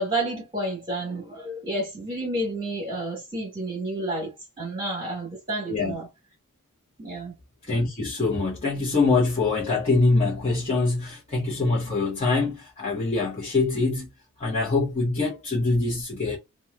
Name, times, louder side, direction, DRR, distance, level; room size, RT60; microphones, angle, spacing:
voice 1, 0.0-6.1 7.0-7.3, right 1 dB, 25° right, 1.2 m, -30 dB
voice 2, 5.7-6.0 7.7-14.1 14.4-16.4, left 3 dB, 30° left, 0.7 m, -24 dB
3.0 x 2.2 x 2.3 m
head